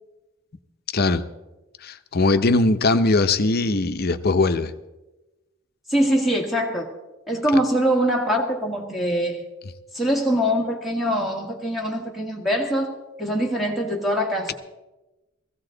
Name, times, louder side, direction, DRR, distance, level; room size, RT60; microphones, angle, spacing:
voice 1, 0.9-1.3 1.8-4.7, left 3 dB, 50° left, 10 dB, 0.7 m, -20 dB
voice 2, 5.9-6.9 7.3-9.4 9.9-14.5, equal, ahead, 0 dB, 1.8 m, -23 dB
17.0 x 15.5 x 3.9 m, 1.0 s
head